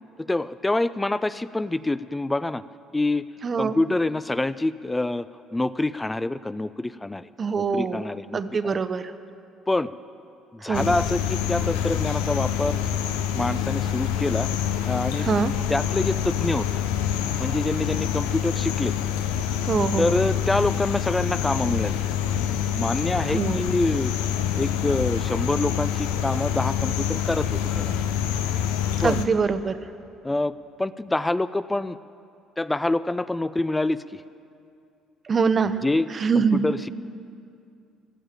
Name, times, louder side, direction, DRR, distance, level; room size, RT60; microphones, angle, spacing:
voice 1, 0.2-2.6 2.9-3.3 3.6-5.3 5.5-7.3 7.6-8.8 9.7-9.9 10.5-12.8 13.3-14.5 14.8-15.3 15.7-16.8 17.4-18.9 20.0-22.0 22.7-24.1 24.6-28.0 29.0-29.2 30.2-32.0 32.6-34.2 35.8-36.1 36.4-36.9, left 2 dB, 15° left, 15 dB, 0.4 m, -26 dB
voice 2, 3.4-3.7 7.4-8.1 8.3-9.1 10.6-10.9 15.2-15.5 19.6-20.1 23.3-23.6 29.0-29.7 35.2-35.8 36.1-36.6, right 5 dB, 40° right, 12 dB, 0.7 m, -24 dB
sound 1, 10.7-29.3, left 9 dB, 90° left, 0.7 m, -26 dB
15.5 x 7.1 x 8.9 m, 2.5 s
supercardioid pair, 70°, 0 cm